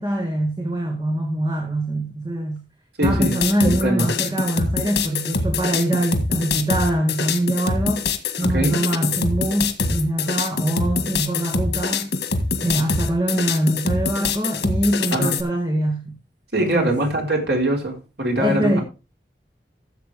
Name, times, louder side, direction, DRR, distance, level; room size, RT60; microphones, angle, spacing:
voice 1, 0.0-2.6 3.0-12.2 12.6-16.1 16.6-17.0 18.4-18.8, right 1 dB, 20° right, 1.9 m, -23 dB
sound 1, 3.0-15.4, left 4 dB, 80° left, 1.8 m, -24 dB
voice 2, 3.0-3.3 3.6-4.1 8.5-8.8 15.1-15.4 16.5-18.8, right 1 dB, 75° right, 4.3 m, -22 dB
15.0 x 7.7 x 3.5 m
head